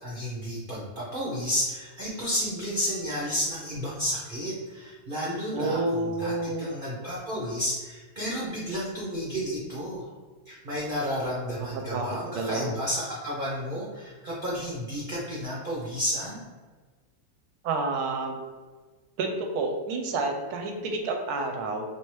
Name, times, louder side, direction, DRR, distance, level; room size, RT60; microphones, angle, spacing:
voice 1, 0.0-10.1 10.5-16.4, equal, 50° right, -7 dB, 0.6 m, -32 dB
voice 2, 5.5-6.7 11.7-12.1 12.3-12.7 17.6-18.4 19.2-21.8, right 3 dB, 75° right, 3 dB, 1.0 m, -29 dB
3.3 x 2.7 x 3.1 m, 1.4 s
omnidirectional pair, 1.8 m